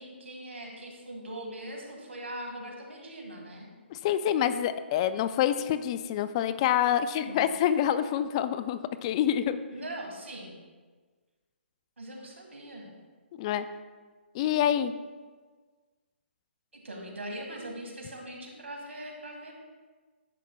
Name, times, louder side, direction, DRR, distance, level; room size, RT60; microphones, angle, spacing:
voice 1, 0.0-3.7 7.2-7.5 9.7-10.5 12.0-12.9 16.7-19.5, right 1 dB, 90° right, 1 dB, 1.9 m, -41 dB
voice 2, 3.9-9.6 13.4-13.7 14.3-14.9, left 10 dB, 30° left, 12 dB, 0.4 m, -27 dB
10.5 x 7.2 x 2.3 m, 1.4 s
hypercardioid pair, 150°, 6 cm